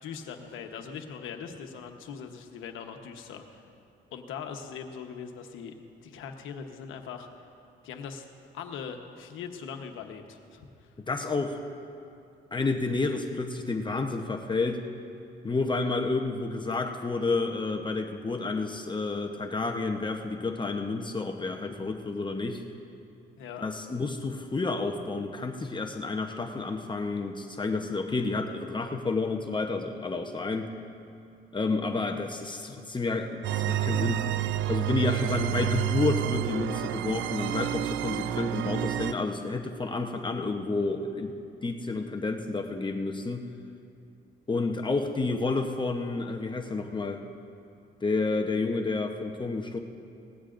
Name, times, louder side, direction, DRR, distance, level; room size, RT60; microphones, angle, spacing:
voice 1, 0.0-3.7 4.1-5.7 6.0-7.3 7.8-8.3 8.5-10.9 23.4-23.7 35.3-35.6, left 6 dB, 85° left, 5 dB, 1.1 m, -41 dB
voice 2, 11.0-11.6 12.5-14.8 15.4-22.6 23.6-30.7 31.5-34.2 34.7-41.3 41.6-43.5 44.5-47.2 48.0-49.8, left 3 dB, 25° left, 3 dB, 0.9 m, -30 dB
sound 1, 33.4-39.1, right 12 dB, 75° right, 0.4 m, -29 dB
19.0 x 15.5 x 2.6 m, 2.5 s
cardioid pair, 90°, 20 cm